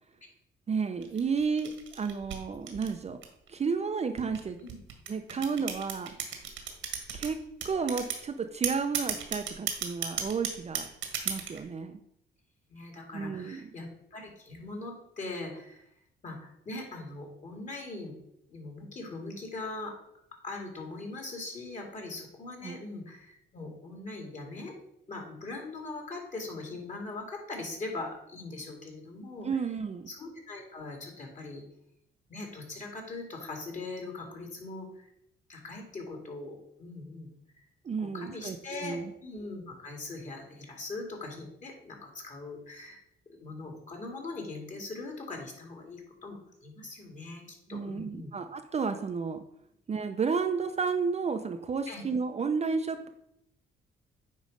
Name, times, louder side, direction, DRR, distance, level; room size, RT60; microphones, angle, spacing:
voice 1, 0.7-3.2 3.5-4.6 5.1-6.1 7.1-7.4 7.6-10.9 11.1-12.0 13.1-13.7 22.6-22.8 29.4-30.1 37.8-39.1 47.7-49.4 49.9-53.1, right 5 dB, 35° right, 7 dB, 0.6 m, -32 dB
sound 1, 1.0-3.5 4.2-7.3 7.6-8.2 8.6-11.6, right 8 dB, 80° right, 1.4 m, -34 dB
voice 2, 12.7-15.9 16.2-18.2 18.5-19.9 20.4-24.7 25.1-29.6 30.1-31.6 32.3-35.1 35.5-37.3 38.0-43.0 43.3-47.4 47.7-48.3 51.9-52.0, left 3 dB, 40° left, 1 dB, 2.3 m, -41 dB
9.1 x 3.2 x 5.1 m, 0.77 s
cardioid pair, 90°, 20 cm